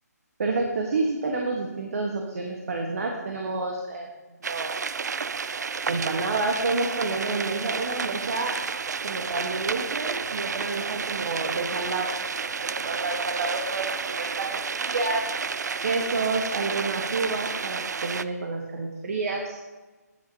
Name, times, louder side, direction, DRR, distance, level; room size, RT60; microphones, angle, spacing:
voice 1, 0.4-4.1 4.4-4.7 5.9-8.6 9.0-15.3 15.8-19.6, right 3 dB, 55° right, 1 dB, 1.4 m, -29 dB
sound 1, 4.4-18.2, right 5 dB, 75° right, 0.4 m, -31 dB
10.0 x 10.0 x 2.8 m, 1.2 s
hypercardioid pair, 165°, 9 cm